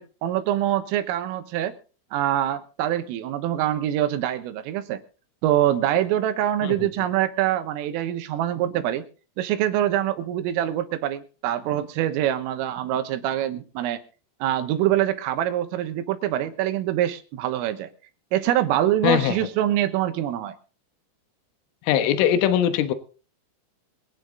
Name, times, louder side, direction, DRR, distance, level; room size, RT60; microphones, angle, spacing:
voice 1, 0.0-1.8 2.1-5.0 5.4-9.1 9.4-14.0 14.4-17.9 18.3-20.6, right 12 dB, 80° right, 9 dB, 3.8 m, -24 dB
voice 2, 19.0-19.4 21.9-22.9, left 10 dB, 75° left, 9 dB, 3.7 m, -21 dB
23.0 x 9.3 x 3.8 m, 0.36 s
omnidirectional pair, 5.9 m